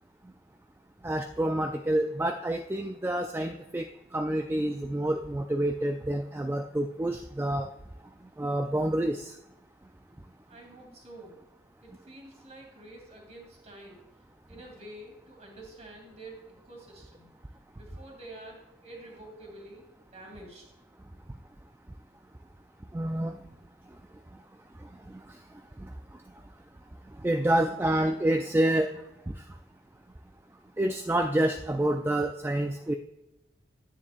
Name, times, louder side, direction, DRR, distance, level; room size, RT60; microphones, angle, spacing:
voice 1, 1.0-7.7 8.4-9.3 22.9-23.3 25.1-25.2 25.8-25.9 27.2-28.9 30.8-32.9, right 1 dB, 10° right, 5 dB, 0.3 m, -28 dB
voice 2, 10.5-11.4 11.8-14.0 14.5-17.3 17.7-19.8 20.1-20.7, right 1 dB, 35° right, 0 dB, 2.6 m, -48 dB
9.7 x 9.6 x 2.5 m, 0.95 s
head